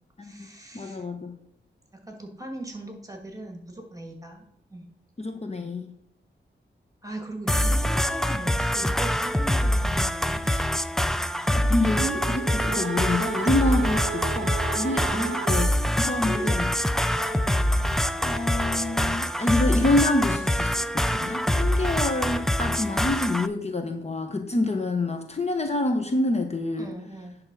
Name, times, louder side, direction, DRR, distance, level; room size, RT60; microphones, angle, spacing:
voice 1, 0.2-1.0 1.9-4.9 7.0-10.7 11.4-11.6 15.0-15.4 16.2-16.7 26.8-27.4, right 2 dB, 15° right, 4 dB, 1.7 m, -39 dB
voice 2, 0.7-1.4 5.2-5.9 11.5-16.7 18.2-26.9, left 2 dB, 35° left, 5 dB, 0.9 m, -27 dB
sound 1, 7.5-23.5, left 1 dB, ahead, 0.3 m, -25 dB
sound 2, 11.9-16.1, right 9 dB, 85° right, 0.4 m, -34 dB
Piano, 16.4-21.3, right 1 dB, 55° left, 1.5 m, -47 dB
10.5 x 3.6 x 5.9 m, 0.75 s
wide cardioid pair, 100°, 20 cm